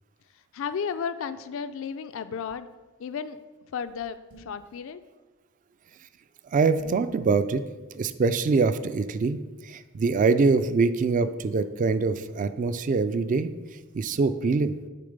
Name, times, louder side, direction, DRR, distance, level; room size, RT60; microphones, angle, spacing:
voice 1, 0.5-2.7 3.0-3.4 3.7-5.0, left 6 dB, 65° left, 13 dB, 0.4 m, -33 dB
sound 1, 4.3-4.7 6.8-7.1, right 1 dB, 85° right, 2.1 m, -48 dB
voice 2, 6.5-7.6 7.9-9.4 9.6-13.5 13.9-14.8, right 4 dB, 35° right, 12 dB, 0.3 m, -24 dB
6.6 x 3.9 x 5.2 m, 1.3 s
head